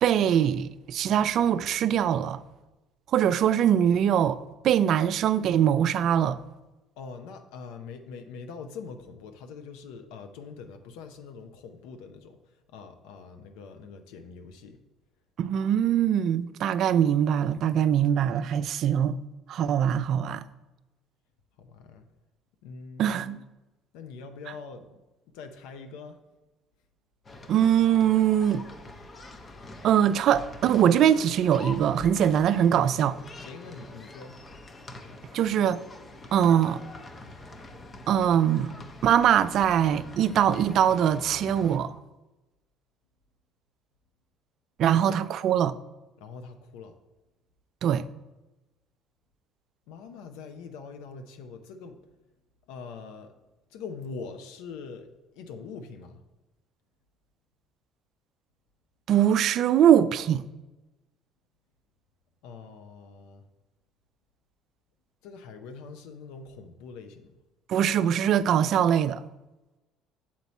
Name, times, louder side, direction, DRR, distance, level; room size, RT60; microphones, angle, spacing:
voice 1, 0.0-2.4 3.1-4.4 4.6-6.4 15.4-19.2 19.5-20.4 23.0-23.4 27.5-28.7 29.8-33.2 35.3-35.8 36.3-36.8 38.1-38.7 39.0-41.9 44.8-45.7 47.8-48.1 59.1-60.4 67.7-69.2, right 9 dB, 60° right, 0.3 m, -22 dB
voice 2, 7.0-12.4 12.7-14.8 21.6-22.1 22.6-23.4 23.9-24.9 25.3-26.2 32.9-33.0 33.4-34.4 44.9-45.2 46.2-46.9 49.9-52.0 52.7-53.3 53.7-56.2 62.4-63.4 65.2-67.3, left 5 dB, 85° left, 0.6 m, -43 dB
sound 1, 27.2-41.8, left 2 dB, 30° left, 0.8 m, -45 dB
7.1 x 4.4 x 4.1 m
supercardioid pair, 85°, 0 cm